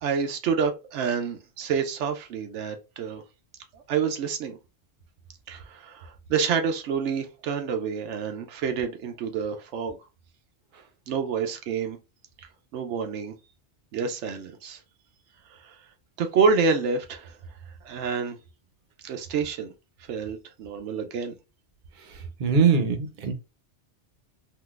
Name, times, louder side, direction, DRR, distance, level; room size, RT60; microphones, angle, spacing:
voice 1, 0.0-3.2 3.7-4.6 5.5-10.0 11.1-12.0 12.7-13.3 13.9-14.8 15.6-15.7 16.2-17.4 17.8-18.4 19.0-19.7 20.1-21.3, right 5 dB, 85° right, 0.9 m, -28 dB
voice 2, 22.4-23.3, right 5 dB, 50° right, 0.8 m, -21 dB
3.8 x 2.5 x 2.4 m
omnidirectional pair, 1.2 m